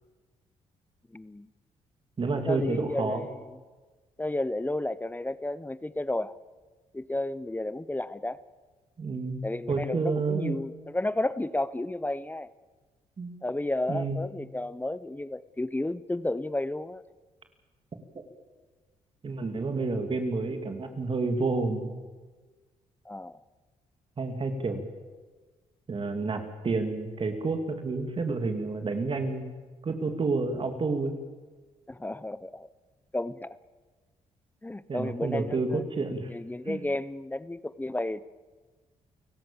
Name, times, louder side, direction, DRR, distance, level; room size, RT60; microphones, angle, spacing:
voice 1, 1.1-1.5 2.3-3.4 4.2-6.3 6.9-8.4 9.4-12.5 13.4-17.0 23.0-23.4 31.9-32.7 33.1-33.6 34.6-35.8 36.3-38.2, left 1 dB, 15° left, 17 dB, 0.8 m, -32 dB
voice 2, 2.2-3.3 9.0-9.4 9.7-10.6 13.2-13.4 13.9-14.2 18.1-18.2 19.2-21.9 24.2-24.9 25.9-29.4 29.8-31.2 34.9-36.3 36.7-36.8, right 3 dB, 40° right, 6 dB, 3.0 m, -29 dB
29.5 x 17.0 x 7.2 m, 1.3 s
cardioid pair, 70°, 13 cm